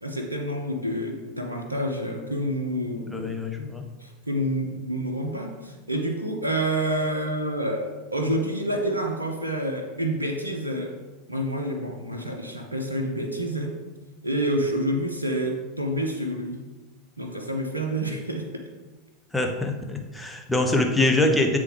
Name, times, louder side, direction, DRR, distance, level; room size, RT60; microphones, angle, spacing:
voice 1, 0.0-3.3 4.0-10.9 11.3-13.8 14.2-16.6 17.2-18.7, right 1 dB, 85° right, 2 dB, 0.6 m, -28 dB
voice 2, 3.1-3.8 19.3-21.6, left 2 dB, 5° left, 2 dB, 0.8 m, -24 dB
8.7 x 3.4 x 3.3 m, 1.2 s
figure-of-eight pair, 85°, 0 cm